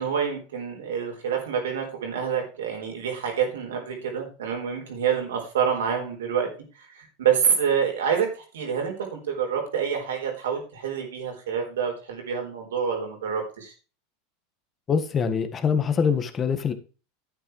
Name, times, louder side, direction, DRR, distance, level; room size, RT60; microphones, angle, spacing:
voice 1, 0.0-6.5 6.8-8.3 8.5-13.7, right 7 dB, 80° right, 2 dB, 4.2 m, -27 dB
voice 2, 14.9-16.7, left 6 dB, 30° left, 8 dB, 1.6 m, -24 dB
11.0 x 9.1 x 3.2 m, 0.36 s
hypercardioid pair, 95°, 0 cm